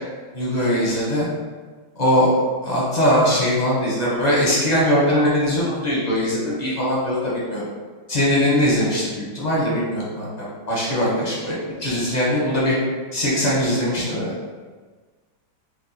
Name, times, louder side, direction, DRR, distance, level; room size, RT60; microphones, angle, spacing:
voice 1, 0.3-1.3 2.0-2.3 2.6-7.6 8.1-9.1 9.3-12.8 13.1-14.3, equal, 40° left, -6 dB, 0.5 m, -21 dB
4.6 x 2.3 x 4.1 m, 1.4 s
omnidirectional pair, 2.1 m